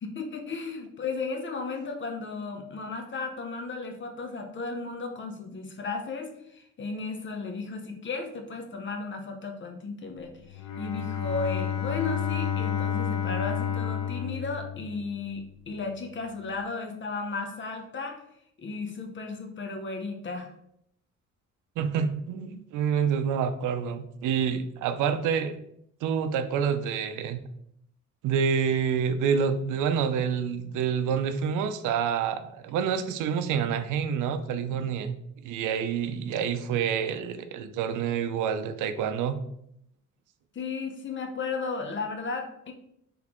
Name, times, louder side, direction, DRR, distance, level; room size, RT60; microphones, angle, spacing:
voice 1, 0.0-18.2 18.6-20.5 40.5-42.7, left 4 dB, 40° left, 5 dB, 0.8 m, -35 dB
Bowed string instrument, 10.4-15.4, left 9 dB, 80° left, 0.6 m, -30 dB
voice 2, 21.8-25.6 26.0-27.4 28.2-35.2 35.4-39.4, right 7 dB, 85° right, 10 dB, 0.5 m, -27 dB
4.1 x 3.3 x 3.0 m, 0.73 s
cardioid pair, 90°, 30 cm